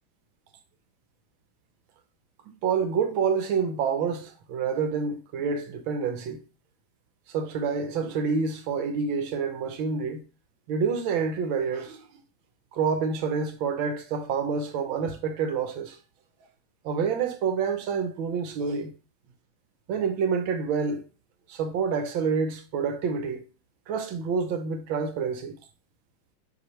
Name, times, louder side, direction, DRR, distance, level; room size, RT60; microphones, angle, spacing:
voice 1, 2.5-6.4 7.3-10.2 10.7-12.1 12.7-16.0 16.8-18.9 19.9-21.0 21.5-23.4 23.9-25.6, right 5 dB, 75° right, 1.5 m, -28 dB
7.6 x 5.0 x 3.2 m
omnidirectional pair, 2.3 m